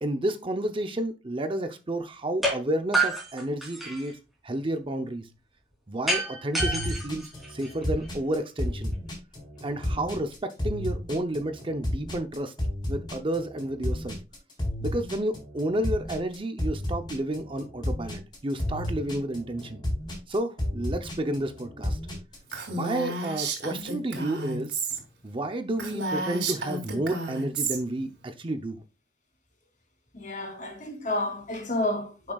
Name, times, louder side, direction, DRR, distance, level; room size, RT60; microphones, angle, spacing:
voice 1, 0.0-4.2 4.4-5.3 5.9-8.9 9.6-12.5 12.9-14.2 14.8-19.8 20.3-22.0 22.7-24.8 25.2-28.8, right 1 dB, 30° right, 0.6 m, -31 dB
sound 1, 2.4-2.6 2.9-4.1 6.1-8.1, right 2 dB, ahead, 3.2 m, -28 dB
sound 2, 6.6-22.5, left 1 dB, 25° left, 3.7 m, -32 dB
Female speech woman speaking, 22.5-25.0 25.3-25.4 25.8-27.8, right 3 dB, 85° right, 2.6 m, -32 dB
voice 2, 30.1-32.3, left 1 dB, 45° left, 3.3 m, -30 dB
10.5 x 6.1 x 2.3 m
head